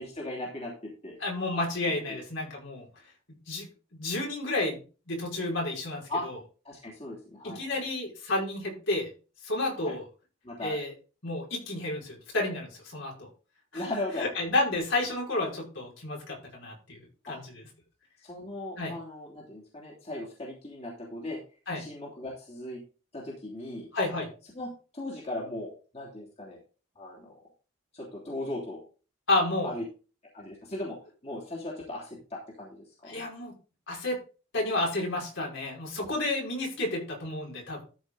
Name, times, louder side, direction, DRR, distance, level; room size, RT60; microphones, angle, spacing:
voice 1, 0.0-1.2 2.1-2.2 6.1-6.2 6.6-7.8 9.8-9.9 10.4-10.8 13.7-14.2 17.3-17.4 18.2-21.4 21.8-22.8 23.1-23.9 24.5-26.6 26.9-27.3 27.9-28.8 29.6-29.8 30.3-31.0 31.2-33.2, left 1 dB, 30° left, -4 dB, 3.0 m, -38 dB
voice 2, 1.2-2.9 3.5-6.4 7.4-9.1 9.4-10.0 10.6-10.9 11.2-13.3 13.7-13.8 14.2-17.6 18.8-18.9 21.7-21.8 23.9-24.3 29.3-29.8 33.1-33.5 33.9-34.2 34.5-37.8, left 2 dB, 65° left, -2 dB, 5.3 m, -31 dB
13.0 x 5.3 x 4.0 m, 0.34 s
head